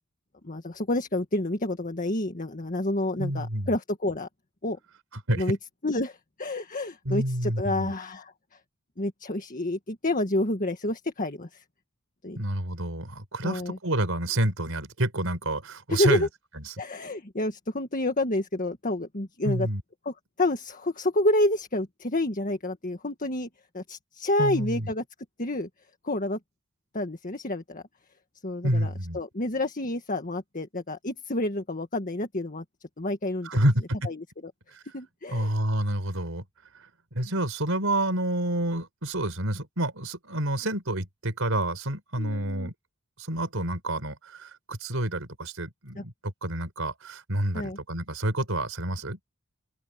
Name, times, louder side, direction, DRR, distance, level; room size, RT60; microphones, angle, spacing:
voice 1, 0.4-4.3 4.6-4.8 5.4-5.6 5.8-8.3 9.0-11.6 12.2-12.4 13.4-13.8 15.9-16.3 16.8-19.7 20.1-23.5 23.7-25.0 25.4-25.7 26.0-26.4 26.9-27.8 28.4-32.6 33.0-33.6 34.1-34.5 34.9-35.5 42.2-42.7 46.0-46.1 47.5-47.8, left 1 dB, 40° left, 1.8 m, -29 dB
voice 2, 3.2-3.7 5.3-5.4 7.0-7.9 12.4-16.3 19.4-19.8 24.4-24.9 28.6-29.2 33.4-34.1 34.7-34.8 35.3-36.4 36.7-36.9 37.1-42.7 43.2-46.1 46.4-49.2, right 1 dB, 75° right, 5.0 m, -28 dB
head